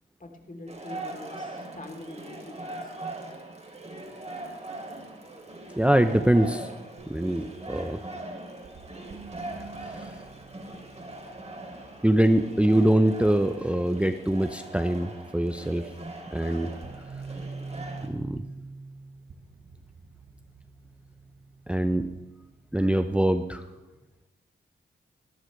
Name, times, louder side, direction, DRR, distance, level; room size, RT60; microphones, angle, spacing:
voice 1, 0.2-2.9, left 2 dB, 40° left, 3 dB, 3.0 m, -44 dB
sound 1, 0.7-18.1, right 2 dB, 30° right, 2.9 m, -41 dB
voice 2, 5.8-6.7 7.0-8.0 9.8-10.1 12.0-15.9 16.3-16.7 18.0-18.4 21.7-22.1 22.7-23.6, right 1 dB, 5° right, 9 dB, 0.7 m, -24 dB
sound 2, 6.9-13.8 15.5-15.6 16.1-23.2, right 4 dB, 80° right, 1.1 m, -46 dB
18.5 x 13.0 x 3.2 m, 1.1 s
cardioid pair, 55°, 21 cm